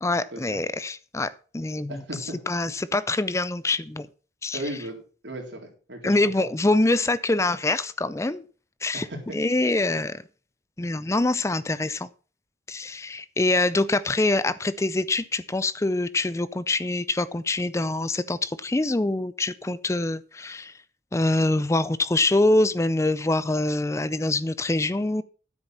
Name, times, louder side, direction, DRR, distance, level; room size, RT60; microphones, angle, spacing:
voice 1, 0.0-4.1 4.4-4.6 6.0-8.4 8.8-10.2 10.8-12.1 12.7-20.7 21.1-25.2, left 2 dB, 15° left, 17 dB, 0.4 m, -25 dB
voice 2, 1.9-2.4 4.5-5.0 5.2-6.2 8.9-9.2, right 1 dB, 75° right, 2 dB, 3.7 m, -35 dB
9.9 x 8.2 x 5.8 m, 0.39 s
head